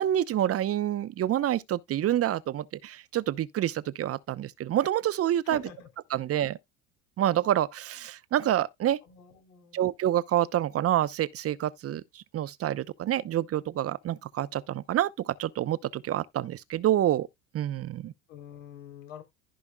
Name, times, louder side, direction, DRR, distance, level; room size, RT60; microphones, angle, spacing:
voice 1, 0.0-5.6 6.1-6.6 7.2-9.0 9.7-17.3 17.5-18.1, right 12 dB, 40° right, 0.8 m, -27 dB
voice 2, 5.4-5.9 9.0-9.8 18.3-19.2, left 9 dB, 80° left, 3.7 m, -45 dB
15.0 x 5.1 x 2.3 m
hypercardioid pair, 90°, 37 cm